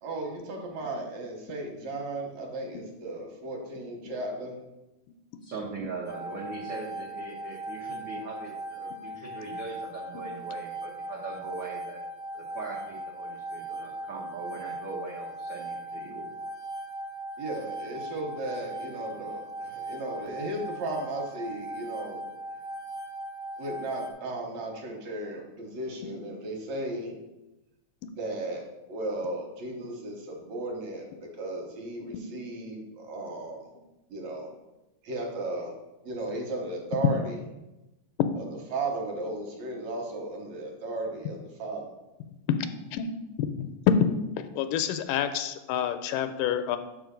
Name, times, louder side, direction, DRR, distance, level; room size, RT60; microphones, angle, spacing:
voice 1, 0.0-4.6 17.4-22.2 23.6-27.2 28.1-33.7 34.1-34.5 35.0-35.7 36.0-37.4 38.4-41.8, right 2 dB, 65° right, 0 dB, 2.1 m, -35 dB
voice 2, 5.4-12.0 12.3-16.3, right 3 dB, 80° right, -4 dB, 1.0 m, -40 dB
sound 1, 6.1-24.1, right 2 dB, 25° left, 0.3 m, -39 dB
voice 3, 43.4-44.0 44.6-46.8, left 8 dB, 85° left, 9 dB, 2.1 m, -27 dB
6.3 x 4.8 x 5.1 m, 0.98 s
omnidirectional pair, 3.7 m